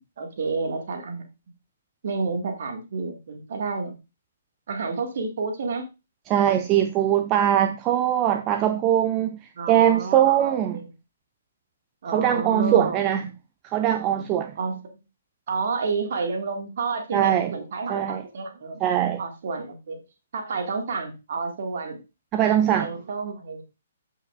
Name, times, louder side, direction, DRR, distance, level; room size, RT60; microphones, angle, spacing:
voice 1, 0.2-1.3 2.0-3.9 4.7-5.9 9.6-10.9 12.0-13.1 14.6-15.0 15.5-18.8 19.2-20.0 20.3-22.0 22.8-23.6, right 4 dB, 50° right, 2.0 m, -30 dB
voice 2, 6.3-9.4 9.7-10.8 12.1-13.3 13.6-14.5 17.1-17.5 17.9-18.2 18.8-19.2 22.3-22.9, right 11 dB, 25° right, 0.5 m, -21 dB
13.5 x 5.5 x 2.5 m
figure-of-eight pair, 125°, 0 cm